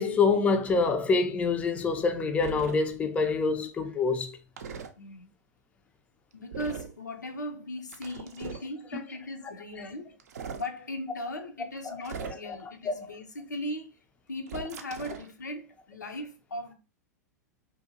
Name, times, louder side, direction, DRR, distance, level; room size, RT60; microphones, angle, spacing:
voice 1, 0.0-4.4 11.9-12.0 12.2-12.4 12.9-13.1, left 4 dB, 15° left, 0.3 m, -26 dB
sound 1, 2.4-2.8 4.6-4.9 6.5-6.9 7.9-8.7 10.2-10.7 12.0-12.6 14.5-15.3, right 6 dB, 65° right, 0.4 m, -39 dB
voice 2, 5.0-5.3 6.3-10.2 10.5-14.0 14.3-16.7, left 1 dB, 85° left, 0.5 m, -38 dB
2.6 x 2.2 x 2.6 m
figure-of-eight pair, 95°, 9 cm